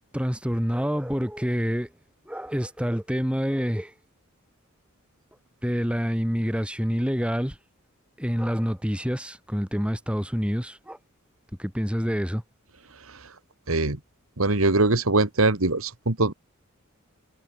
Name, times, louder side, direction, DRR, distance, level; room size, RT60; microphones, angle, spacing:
voice 1, 0.1-1.9 2.3-3.9 5.6-7.6 8.2-11.0 11.6-12.4, equal, 5° right, 5.4 m, -27 dB
voice 2, 14.4-16.3, right 2 dB, 70° right, 2.0 m, -22 dB
head